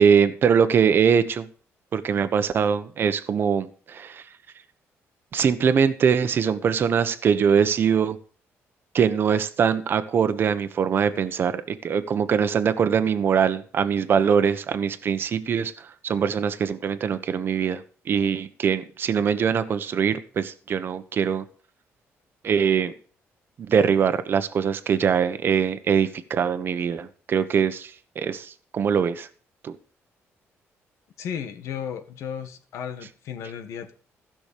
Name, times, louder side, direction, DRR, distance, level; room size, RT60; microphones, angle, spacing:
voice 1, 0.0-1.5 1.9-4.2 5.3-8.2 8.9-21.4 22.4-22.9 23.7-29.3 29.6-29.8, right 7 dB, 45° right, 10 dB, 1.1 m, -22 dB
voice 2, 31.2-33.9, left 8 dB, 80° left, 7 dB, 1.7 m, -34 dB
15.5 x 6.1 x 6.8 m, 0.42 s
cardioid pair, 140°, 5 cm